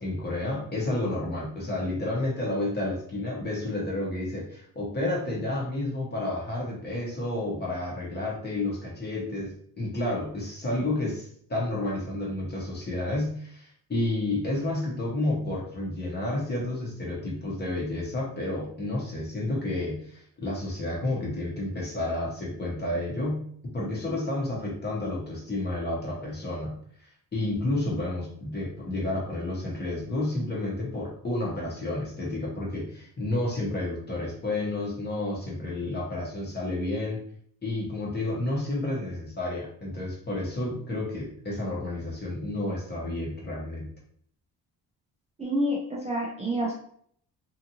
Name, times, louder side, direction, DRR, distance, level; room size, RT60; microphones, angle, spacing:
voice 1, 0.0-23.4 23.7-26.7 27.0-37.2 37.6-43.9, left 2 dB, 25° left, -4 dB, 0.8 m, -30 dB
voice 2, 45.4-46.7, equal, 20° right, -4 dB, 0.3 m, -28 dB
2.7 x 2.4 x 2.7 m, 0.63 s
cardioid pair, 165°, 41 cm